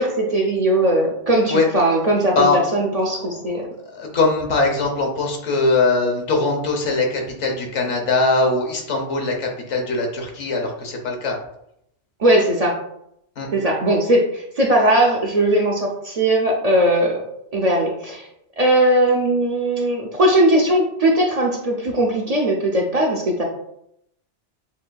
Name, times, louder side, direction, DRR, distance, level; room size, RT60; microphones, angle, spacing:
voice 1, 0.0-3.7 12.2-12.8 13.5-17.2 17.5-18.3 18.6-23.4, right 1 dB, 45° right, -1 dB, 0.6 m, -19 dB
voice 2, 3.9-11.4 13.4-13.5, left 3 dB, 90° left, 1 dB, 1.2 m, -21 dB
7.0 x 2.5 x 2.2 m, 0.77 s
omnidirectional pair, 1.2 m